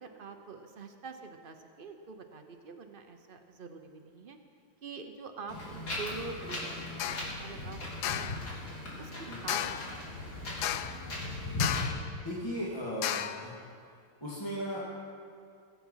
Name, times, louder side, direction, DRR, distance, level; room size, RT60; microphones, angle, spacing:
voice 1, 0.0-4.4 4.8-8.6 9.0-9.1 9.4-10.3, right 4 dB, 75° right, 5 dB, 0.5 m, -45 dB
Wind, 5.5-11.9, left 2 dB, 55° left, 3.4 m, -38 dB
sound 1, 7.0-7.3 8.0-8.4 9.5-9.9 10.6-11.1 11.6-12.1 13.0-13.5, left 11 dB, 70° left, 1.0 m, -33 dB
voice 2, 12.2-13.5 14.2-14.8, equal, 15° left, -7 dB, 2.1 m, -36 dB
21.0 x 8.4 x 5.6 m, 2.3 s
omnidirectional pair, 2.1 m